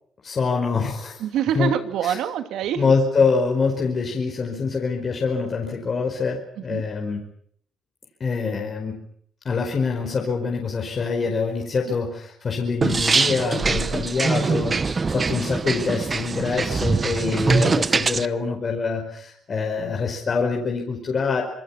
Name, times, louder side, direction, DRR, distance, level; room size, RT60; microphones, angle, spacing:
voice 1, 0.2-1.2 1.5-1.7 2.0-2.2 2.8-7.2 8.2-9.0 9.4-21.4, left 4 dB, 45° left, 1 dB, 5.0 m, -25 dB
voice 2, 1.2-2.9 6.6-6.9 11.9-12.0 14.3-14.6 17.4-17.8, right 9 dB, 85° right, 8 dB, 2.5 m, -27 dB
Beat box, 12.8-18.3, right 4 dB, 30° right, 0.9 m, -23 dB
26.5 x 21.5 x 7.3 m, 0.64 s
cardioid pair, 90°, 0 cm